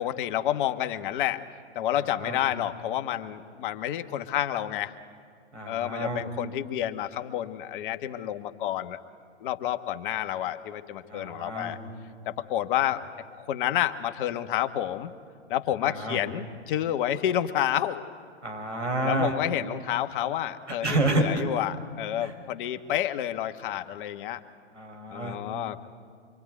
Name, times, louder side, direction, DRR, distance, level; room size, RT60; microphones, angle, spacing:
voice 1, 0.0-1.4 1.7-4.9 5.7-9.0 9.4-11.8 12.3-13.0 13.3-15.1 15.5-18.0 19.0-24.4 25.1-25.9, left 12 dB, 45° left, 9 dB, 1.3 m, -29 dB
voice 2, 1.9-2.4 5.5-6.2 11.1-11.8 15.8-16.2 18.4-19.3 20.8-21.4 22.2-22.3 24.7-25.4, right 2 dB, 85° right, 2 dB, 5.9 m, -29 dB
25.0 x 25.0 x 9.3 m, 2.2 s
figure-of-eight pair, 105°, 35 cm